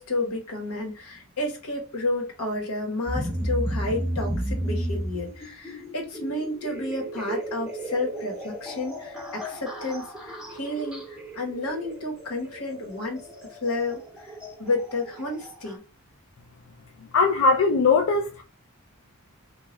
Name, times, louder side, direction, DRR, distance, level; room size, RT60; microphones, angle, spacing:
voice 1, 0.0-13.2 13.5-14.3 14.6-15.8, left 2 dB, 90° left, 1.1 m, -31 dB
sound 1, 3.1-15.7, equal, 5° right, 0.5 m, -34 dB
voice 2, 17.1-18.4, left 4 dB, 65° left, 0.4 m, -20 dB
3.0 x 2.3 x 2.9 m
head